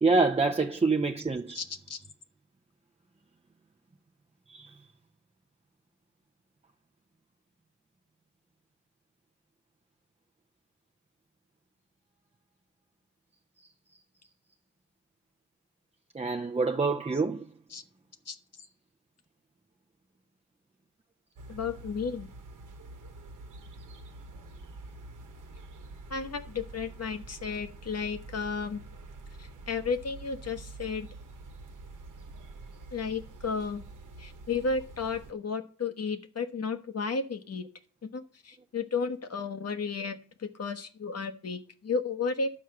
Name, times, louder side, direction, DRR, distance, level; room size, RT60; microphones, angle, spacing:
voice 1, 0.0-1.6 4.5-4.7 16.1-17.5, right 3 dB, 20° right, 0.7 m, -26 dB
voice 2, 1.5-2.0 17.7-17.8 18.3-18.4 21.5-22.3 26.1-28.8 29.4-31.1 32.9-33.8 34.2-37.6 38.0-42.5, left 5 dB, 55° left, 1.3 m, -33 dB
sound 1, 21.4-35.3, right 2 dB, 80° right, 1.2 m, -47 dB
11.0 x 4.6 x 7.7 m
cardioid pair, 55°, 31 cm